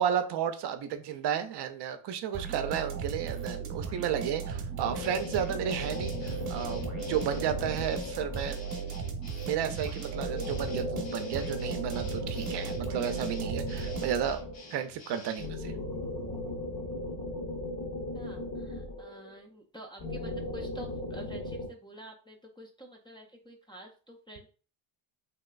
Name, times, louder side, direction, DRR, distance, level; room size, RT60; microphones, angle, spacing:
voice 1, 0.0-8.6 9.4-14.4 14.7-15.7, right 9 dB, 60° right, 8 dB, 0.6 m, -32 dB
sound 1, 2.3-14.5, right 6 dB, 40° right, 0.9 m, -37 dB
sound 2, 4.8-9.0 10.1-14.8 15.4-19.4 20.0-21.7, left 1 dB, 40° left, 0.9 m, -37 dB
sound 3, 5.0-15.5, left 2 dB, 60° left, 1.3 m, -50 dB
voice 2, 18.1-24.5, equal, 10° left, -2 dB, 0.4 m, -48 dB
3.0 x 2.9 x 2.3 m, 0.37 s
cardioid pair, 100°, 46 cm